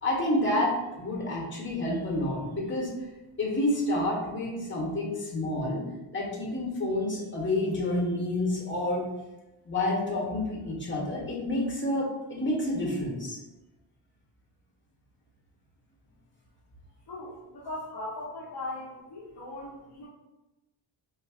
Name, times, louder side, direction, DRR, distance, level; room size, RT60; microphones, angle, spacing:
voice 1, 0.0-2.9 3.4-5.8 6.1-9.1 9.6-13.4, left 1 dB, 25° left, -4 dB, 1.3 m, -29 dB
voice 2, 17.1-20.1, left 2 dB, 50° left, -8 dB, 1.0 m, -39 dB
5.2 x 2.3 x 2.4 m, 1.0 s
cardioid pair, 100°, 47 cm